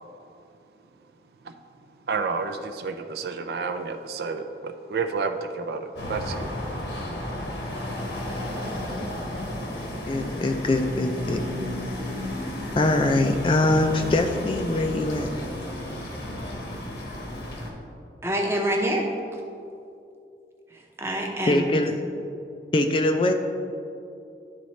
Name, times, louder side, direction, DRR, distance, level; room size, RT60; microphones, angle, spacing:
voice 1, 2.1-6.5, right 4 dB, 65° right, 6 dB, 0.4 m, -30 dB
sound 1, 6.0-17.7, left 1 dB, 80° left, 1.1 m, -33 dB
voice 2, 10.1-11.4 12.8-15.3 21.5-21.9 22.7-23.3, left 2 dB, 30° left, 5 dB, 0.3 m, -22 dB
voice 3, 18.2-19.0 21.0-21.8, right 1 dB, 15° right, 0 dB, 0.7 m, -26 dB
11.0 x 4.0 x 3.2 m, 2.6 s
head